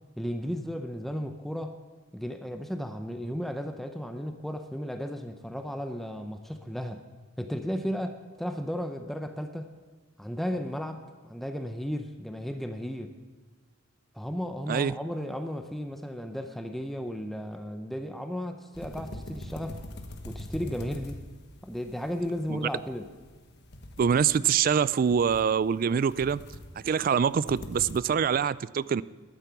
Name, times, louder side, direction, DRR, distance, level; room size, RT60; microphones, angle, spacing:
voice 1, 0.2-1.8 2.1-7.0 7.4-9.7 10.2-13.1 14.1-19.8 20.2-21.2 21.6-23.1, equal, ahead, 6 dB, 0.6 m, -34 dB
sound 1, 18.7-28.0, left 1 dB, 55° left, 1.3 m, -44 dB
voice 2, 24.0-26.4 26.8-29.0, right 7 dB, 45° right, 19 dB, 0.3 m, -25 dB
12.0 x 9.1 x 6.9 m, 1.5 s
head